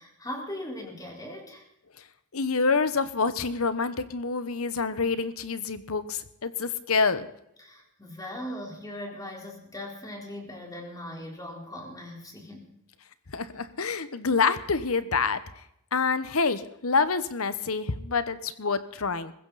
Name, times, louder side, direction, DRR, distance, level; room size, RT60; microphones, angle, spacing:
voice 1, 0.0-1.6 7.6-12.7, left 1 dB, 15° left, 1 dB, 4.1 m, -39 dB
voice 2, 2.3-7.3 13.3-15.4 15.9-19.3, left 4 dB, 70° left, 13 dB, 1.1 m, -27 dB
21.0 x 15.5 x 4.2 m, 0.78 s
head